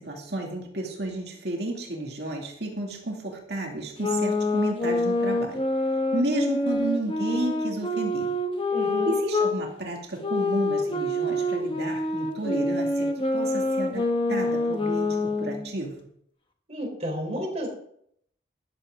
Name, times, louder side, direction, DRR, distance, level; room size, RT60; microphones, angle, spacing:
voice 1, 0.0-5.6 6.1-8.3 9.1-16.1, right 2 dB, 60° right, 0 dB, 2.5 m, -32 dB
sound 1, 4.0-9.6 10.2-15.7, left 2 dB, 30° left, 1.3 m, -26 dB
voice 2, 8.7-9.2 16.7-17.7, right 1 dB, 35° right, 1 dB, 3.8 m, -31 dB
13.5 x 11.0 x 3.7 m, 0.68 s
head